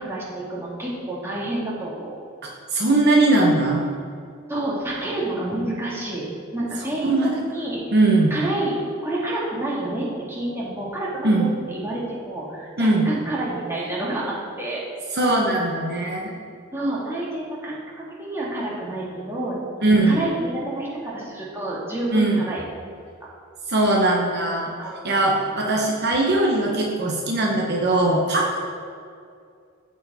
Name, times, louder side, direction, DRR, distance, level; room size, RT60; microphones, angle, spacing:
voice 1, 0.0-2.2 3.6-3.7 4.5-6.3 6.5-7.8 8.3-14.8 15.7-16.0 16.7-17.8 18.2-22.6 24.8-25.0, right 1 dB, 10° right, -6 dB, 2.1 m, -29 dB
voice 2, 2.4-3.8 7.0-7.3 7.9-8.3 11.2-11.4 12.8-13.1 15.1-16.3 19.8-20.2 22.1-22.4 23.7-24.7 25.0-28.6, right 2 dB, 55° right, -1 dB, 1.0 m, -20 dB
14.5 x 4.9 x 4.2 m, 2.3 s
head